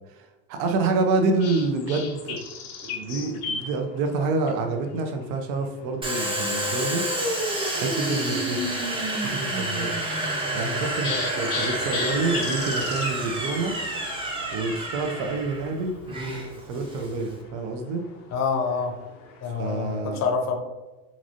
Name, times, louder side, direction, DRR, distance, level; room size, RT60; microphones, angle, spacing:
voice 1, 0.1-2.4 2.8-7.1 7.7-8.8 9.1-10.0 10.5-13.7 14.5-16.0 16.6-18.1 19.6-20.3, right 3 dB, 55° right, 4 dB, 0.6 m, -27 dB
sound 1, 0.5-20.0, left 5 dB, 90° left, 0.6 m, -40 dB
Domestic sounds home sounds, 6.0-17.4, right 1 dB, 10° right, 0.6 m, -29 dB
voice 2, 18.3-19.0 19.4-20.6, left 5 dB, 40° left, 4 dB, 0.6 m, -27 dB
2.9 x 2.6 x 2.5 m, 1.2 s
supercardioid pair, 95°, 42 cm